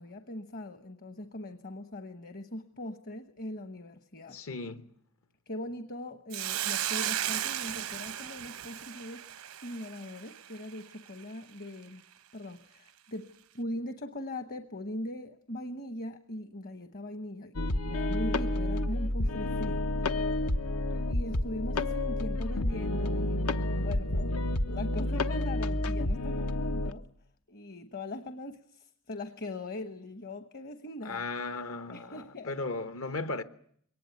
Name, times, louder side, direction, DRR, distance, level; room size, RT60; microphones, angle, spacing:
voice 1, 0.0-4.4 5.5-9.2 9.6-12.0 12.3-17.6 17.9-19.9 21.1-24.4 24.7-27.1 27.5-31.2 31.9-32.6, left 1 dB, 45° left, 1.0 m, -40 dB
voice 2, 4.3-4.9 31.0-33.4, left 3 dB, 65° left, 1.1 m, -36 dB
Hiss, 6.3-10.8, right 12 dB, 90° right, 0.9 m, -35 dB
sound 1, 17.5-26.9, left 1 dB, 90° left, 1.1 m, -30 dB
23.0 x 19.0 x 9.3 m
head